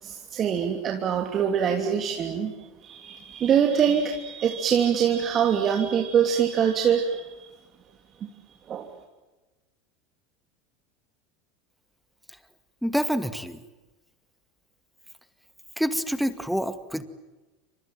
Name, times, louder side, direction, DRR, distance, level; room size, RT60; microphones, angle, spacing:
voice 1, 0.0-2.5 2.8-7.4 8.2-8.3 8.7-8.9, right 8 dB, 35° right, 2 dB, 3.1 m, -24 dB
voice 2, 12.8-13.6 15.8-17.1, equal, ahead, 11 dB, 2.1 m, -27 dB
29.5 x 26.0 x 7.6 m, 1.1 s
hypercardioid pair, 80°, 0 cm